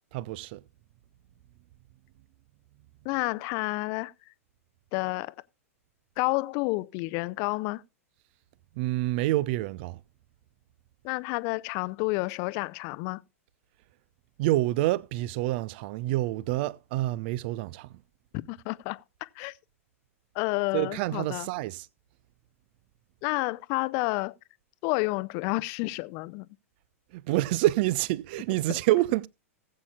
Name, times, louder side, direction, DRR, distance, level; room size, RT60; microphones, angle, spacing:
voice 1, 0.1-0.6 8.8-10.0 14.4-17.9 20.7-21.9 27.1-29.3, right 17 dB, 45° right, 0.5 m, -27 dB
voice 2, 3.0-4.1 4.9-5.3 6.2-7.8 11.0-13.2 18.5-19.6 20.3-21.5 23.2-24.3 24.8-26.5 28.7-28.8, left 24 dB, 40° left, 0.6 m, -30 dB
19.0 x 8.5 x 2.3 m
figure-of-eight pair, 100°, 8 cm